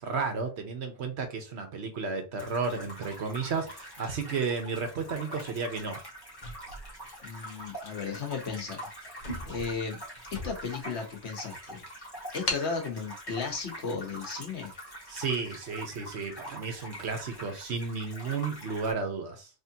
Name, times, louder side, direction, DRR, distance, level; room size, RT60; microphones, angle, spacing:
voice 1, 0.0-6.0 15.1-19.5, right 4 dB, 80° right, 1.2 m, -33 dB
sound 1, 2.4-18.9, equal, 20° left, 1.7 m, -44 dB
sound 2, 6.3-7.7 8.3-8.5 8.8-8.9 9.1-10.9 11.4-11.5 12.5-12.8, left 1 dB, 45° left, 1.1 m, -38 dB
voice 2, 7.2-8.9 9.4-10.0 10.3-14.7, left 5 dB, 85° left, 1.4 m, -35 dB
3.7 x 3.3 x 2.8 m
omnidirectional pair, 1.1 m